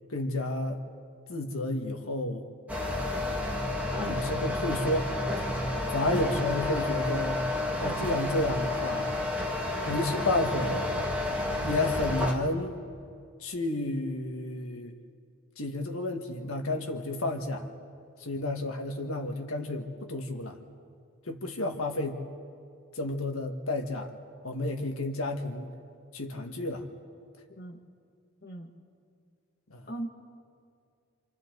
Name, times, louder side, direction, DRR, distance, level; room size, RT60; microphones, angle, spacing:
voice 1, 0.1-0.8 1.3-2.5 4.1-5.1 5.4-5.6 5.9-7.4 7.8-9.1 9.8-10.9 11.6-12.8 13.4-14.9 15.6-17.7 18.2-20.6 21.3-22.2 22.9-24.1 24.4-25.7 26.1-26.9 29.7-29.8, left 2 dB, 85° left, 4 dB, 1.8 m, -31 dB
sound 1, 2.7-12.3, left 2 dB, 5° right, 2.1 m, -30 dB
voice 2, 4.0-4.2 27.6-27.8 28.4-28.7 29.9-30.1, equal, 50° left, 1 dB, 2.0 m, -38 dB
27.5 x 27.5 x 4.0 m, 2.3 s
head